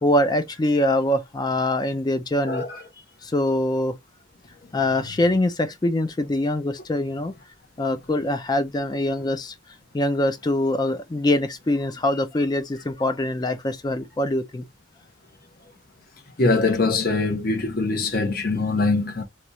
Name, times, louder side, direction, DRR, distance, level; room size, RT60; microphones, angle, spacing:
voice 1, 0.0-2.8 3.2-4.0 4.7-7.3 7.8-9.5 9.9-14.7, left 1 dB, 20° left, 0.4 m, -23 dB
voice 2, 16.4-19.2, left 3 dB, 50° left, 1.0 m, -22 dB
3.0 x 2.3 x 3.9 m
head